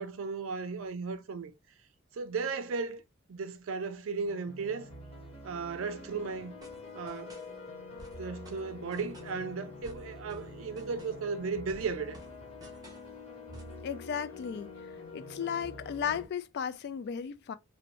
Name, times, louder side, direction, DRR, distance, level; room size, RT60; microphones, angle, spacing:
voice 1, 0.0-1.5 2.1-3.0 3.3-4.9 5.4-6.5 6.9-7.4 8.2-12.2, right 4 dB, 80° right, 0.4 m, -35 dB
sound 1, 4.2-16.3, left 3 dB, 30° left, 1.1 m, -46 dB
sound 2, 6.6-7.5 8.0-9.4 9.8-11.3 11.7-13.1 13.5-13.8, right 1 dB, 20° right, 0.7 m, -54 dB
voice 2, 13.8-14.7 15.1-17.6, left 7 dB, 55° left, 0.3 m, -35 dB
2.6 x 2.1 x 2.9 m
head